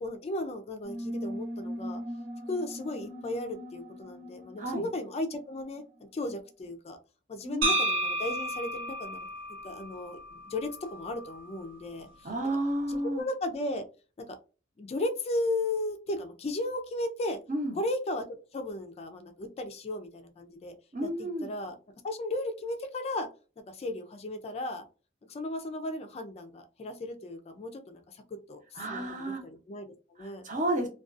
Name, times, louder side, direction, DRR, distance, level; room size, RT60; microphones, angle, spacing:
voice 1, 0.0-2.0 2.5-5.8 6.1-7.0 7.3-9.2 9.6-12.3 12.9-13.9 14.2-14.4 14.8-17.4 17.8-18.3 18.5-20.7 21.0-21.8 22.0-23.3 23.7-24.9 25.3-28.2 28.5-30.5, left 2 dB, 35° left, 7 dB, 0.3 m, -35 dB
sound 1, 0.8-6.0, equal, 10° right, 0.8 m, -40 dB
sound 2, 7.6-11.7, right 1 dB, 85° right, 0.9 m, -32 dB
voice 2, 12.2-13.2 17.5-17.8 20.9-21.5 28.7-29.4 30.2-30.9, right 1 dB, 40° right, 2 dB, 0.7 m, -31 dB
2.4 x 2.3 x 2.4 m, 0.34 s
head